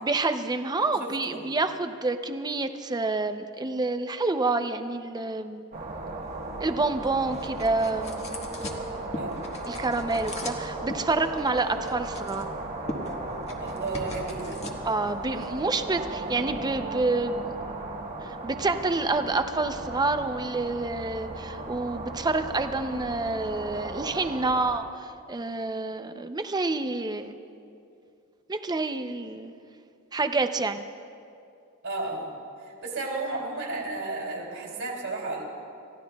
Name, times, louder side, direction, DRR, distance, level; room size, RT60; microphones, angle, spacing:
voice 1, 0.0-5.7 6.6-8.3 9.7-12.5 14.9-17.6 18.2-27.4 28.5-29.5 30.1-30.8, right 3 dB, 20° right, 8 dB, 0.5 m, -28 dB
voice 2, 0.8-1.4 9.1-9.4 13.6-14.6 31.8-32.3 32.6-35.4, right 3 dB, 65° right, -1 dB, 3.0 m, -33 dB
sound 1, 5.7-24.7, right 2 dB, 40° right, 1.4 m, -36 dB
sound 2, 6.2-16.4, left 1 dB, 30° left, 1.3 m, -41 dB
28.5 x 14.5 x 2.3 m, 2.5 s
head